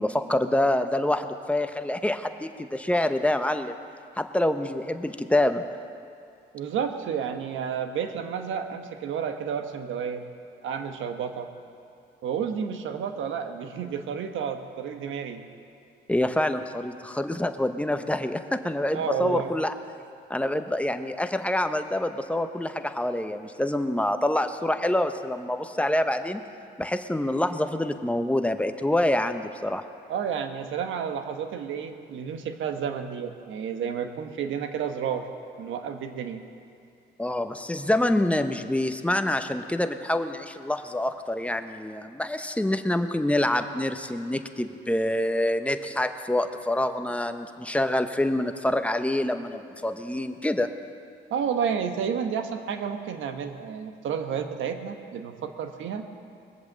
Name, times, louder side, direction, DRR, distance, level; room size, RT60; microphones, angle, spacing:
voice 1, 0.0-3.7 4.2-5.6 16.1-19.7 20.3-26.4 26.8-29.8 37.2-50.7, left 1 dB, 5° left, 8 dB, 0.9 m, -26 dB
voice 2, 6.5-10.2 10.6-11.5 12.2-15.4 18.9-19.5 30.1-35.3 35.6-36.4 51.3-56.0, right 7 dB, 80° right, 7 dB, 1.2 m, -31 dB
21.0 x 8.0 x 7.4 m, 2.5 s
cardioid pair, 90°, 20 cm